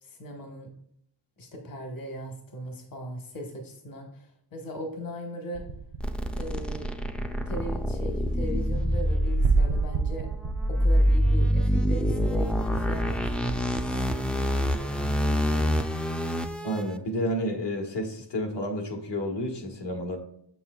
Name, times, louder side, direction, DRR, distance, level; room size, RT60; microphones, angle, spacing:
voice 1, 0.0-0.7 1.4-5.6 6.4-6.9 7.5-10.3 10.7-15.4, equal, 50° left, 2 dB, 1.2 m, -39 dB
sound 1, 5.5-7.0 9.4-12.0, right 5 dB, 80° right, 0.8 m, -30 dB
sound 2, 6.0-16.8, equal, 5° left, 0.3 m, -26 dB
voice 2, 16.6-20.2, equal, 70° left, 3 dB, 1.4 m, -30 dB
7.1 x 6.9 x 2.3 m, 0.71 s
wide cardioid pair, 140°, 44 cm